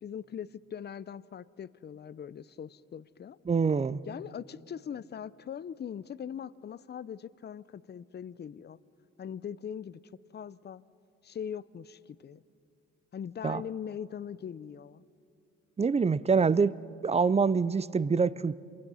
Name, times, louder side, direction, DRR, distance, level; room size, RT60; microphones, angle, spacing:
voice 1, 0.0-3.4 4.1-8.8 9.2-10.0 10.3-10.8 11.2-12.4 13.1-15.0, left 8 dB, 35° left, 18 dB, 0.6 m, -41 dB
voice 2, 3.5-4.0 13.4-13.6 15.8-16.7 17.0-18.5, right 5 dB, 20° right, 18 dB, 0.5 m, -25 dB
27.5 x 23.0 x 5.6 m, 2.6 s
cardioid pair, 90°, 30 cm